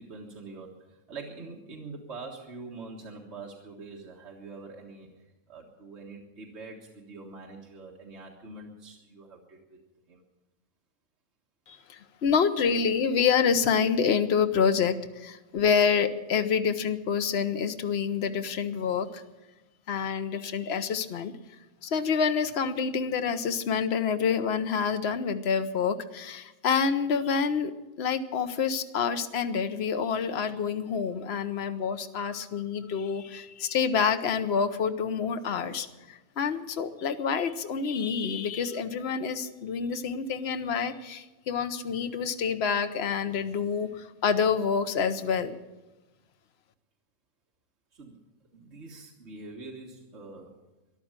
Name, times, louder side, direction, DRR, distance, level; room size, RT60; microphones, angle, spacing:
voice 1, 0.0-9.8 10.1-10.2 47.9-48.2 48.5-50.5, right 3 dB, 60° right, -1 dB, 1.9 m, -44 dB
voice 2, 11.7-19.2 19.9-21.3 21.8-27.7 28.0-45.6, left 6 dB, 60° left, 8 dB, 1.1 m, -27 dB
14.0 x 11.0 x 8.9 m, 1.1 s
omnidirectional pair, 1.3 m